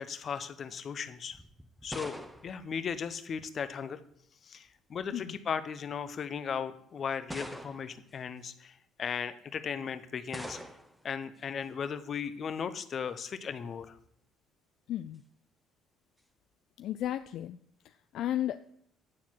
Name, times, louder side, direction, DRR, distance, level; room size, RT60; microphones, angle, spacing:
voice 1, 0.0-1.4 1.8-4.0 4.4-10.6 11.0-14.0, left 7 dB, 45° left, 12 dB, 0.8 m, -37 dB
sound 1, 1.3-3.7 4.7-5.1 6.0-6.1 7.3-8.1 10.3-11.1, equal, 5° right, 0.9 m, -44 dB
voice 2, 14.9-15.2 16.8-17.6 17.8-18.6, left 12 dB, 70° left, 10 dB, 0.3 m, -34 dB
9.6 x 4.4 x 7.5 m, 0.68 s
cardioid pair, 90°, 0 cm